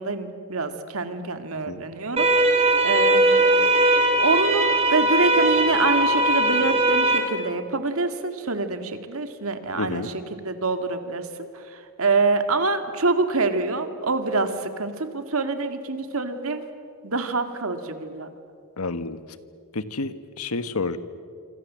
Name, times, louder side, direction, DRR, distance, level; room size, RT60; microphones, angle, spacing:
voice 1, 0.0-3.5 4.2-16.6 17.0-18.3, right 3 dB, 70° right, 8 dB, 2.2 m, -26 dB
sound 1, 2.2-7.2, right 2 dB, 25° right, 4.1 m, -19 dB
voice 2, 9.8-10.1 18.8-19.2 19.7-21.0, left 3 dB, 80° left, 12 dB, 1.4 m, -29 dB
26.5 x 26.5 x 7.6 m, 2.2 s
head